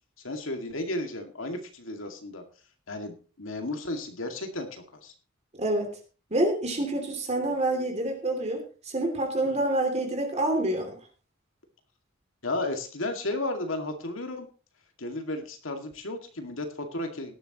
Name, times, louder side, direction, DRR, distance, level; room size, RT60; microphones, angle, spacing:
voice 1, 0.2-2.4 2.9-5.1 9.4-9.5 12.4-14.5 15.0-17.4, left 2 dB, 80° left, 5 dB, 2.3 m, -33 dB
voice 2, 5.6-5.9 6.3-8.6 8.9-10.9, right 1 dB, 35° right, 3 dB, 2.8 m, -27 dB
17.5 x 12.0 x 3.0 m, 0.36 s
head